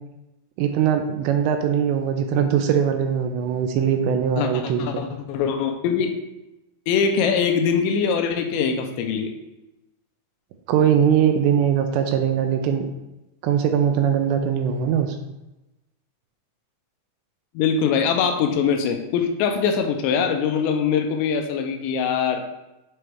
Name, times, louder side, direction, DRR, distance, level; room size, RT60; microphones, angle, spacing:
voice 1, 0.6-5.0 10.7-12.9 13.4-15.2, right 8 dB, 85° right, 6 dB, 2.6 m, -21 dB
voice 2, 4.4-6.1 6.9-9.3 17.6-22.4, left 6 dB, 80° left, 5 dB, 2.8 m, -22 dB
7.7 x 3.3 x 4.6 m, 0.96 s
omnidirectional pair, 5.3 m